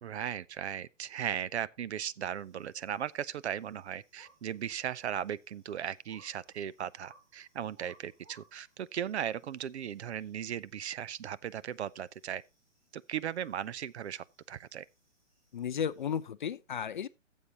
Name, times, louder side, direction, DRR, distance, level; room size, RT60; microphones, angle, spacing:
voice 1, 0.0-12.4 12.9-14.9, right 9 dB, 60° right, 0.5 m, -37 dB
sound 1, 2.3-16.2, right 1 dB, 30° right, 6.8 m, -67 dB
voice 2, 15.5-17.1, left 8 dB, 40° left, 0.4 m, -34 dB
14.0 x 7.3 x 2.9 m
hypercardioid pair, 140°, 38 cm